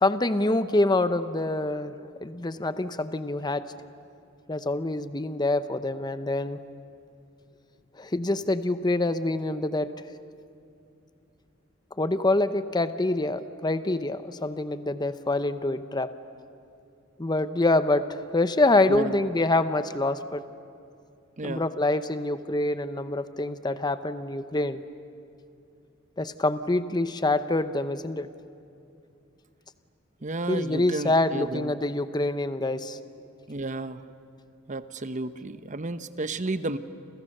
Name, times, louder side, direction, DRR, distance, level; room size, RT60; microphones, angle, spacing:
voice 1, 0.0-1.9 2.2-3.7 4.5-6.6 8.0-9.9 12.0-16.1 17.2-20.4 21.4-24.8 26.2-28.3 30.5-33.0, left 2 dB, 20° left, 11 dB, 0.8 m, -26 dB
voice 2, 30.2-31.7 33.5-34.0 34.7-36.8, right 2 dB, 40° right, 11 dB, 0.9 m, -32 dB
30.0 x 28.0 x 6.7 m, 2.6 s
head